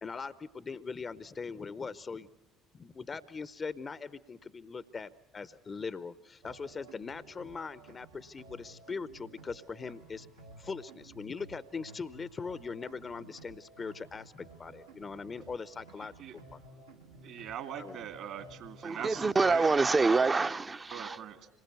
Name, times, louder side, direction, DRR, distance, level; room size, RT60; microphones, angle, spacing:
voice 1, 0.0-2.3 2.7-10.3 10.6-16.6 17.8-18.1, left 5 dB, 30° left, 0.7 m, -41 dB
sound 1, 6.4-19.6, right 2 dB, 85° right, 1.6 m, -54 dB
voice 2, 17.2-19.7 20.9-21.5, right 9 dB, 55° right, 2.2 m, -42 dB
voice 3, 18.8-21.2, right 3 dB, 25° right, 0.7 m, -26 dB
26.5 x 20.5 x 7.0 m
figure-of-eight pair, 55°, 0 cm